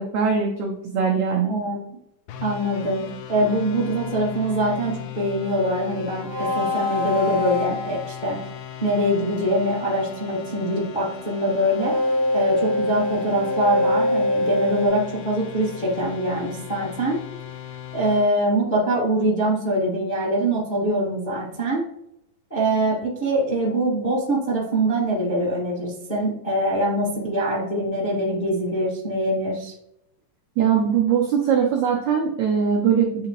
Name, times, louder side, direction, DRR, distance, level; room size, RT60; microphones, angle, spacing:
voice 1, 0.0-1.5 30.6-33.3, right 7 dB, 90° right, 0 dB, 1.6 m, -21 dB
voice 2, 1.4-1.8 2.4-3.0 3.3-6.3 6.5-8.4 8.8-11.9 12.3-17.2 17.9-21.8 22.5-29.7, right 1 dB, 35° left, -6 dB, 0.7 m, -23 dB
sound 1, 2.3-18.3, left 10 dB, 80° left, 2.3 m, -38 dB
sound 2, 6.2-8.4 11.7-14.9, left 2 dB, 70° right, 1.5 m, -24 dB
8.8 x 3.8 x 3.0 m, 0.80 s
omnidirectional pair, 4.3 m